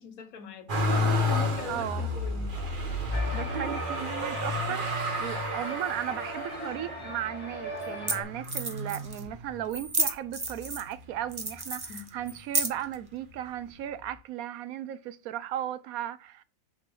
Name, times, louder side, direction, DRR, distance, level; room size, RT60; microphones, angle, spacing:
voice 1, 0.0-2.8 11.9-12.1, left 8 dB, 80° left, 1.5 m, -42 dB
Motor vehicle (road), 0.7-9.8 10.4-11.2 11.5-12.6 13.6-13.7, left 1 dB, 40° right, 1.3 m, -32 dB
voice 2, 1.7-2.1 3.3-16.4, right 11 dB, 85° right, 1.1 m, -36 dB
sound 1, 3.1-8.2, equal, 5° left, 2.0 m, -38 dB
sound 2, 7.0-7.1 7.8-7.9 8.1-8.2 8.4-9.2 9.7-10.9 11.3-12.9, right 2 dB, 20° right, 0.7 m, -31 dB
6.4 x 3.9 x 6.2 m
omnidirectional pair, 1.5 m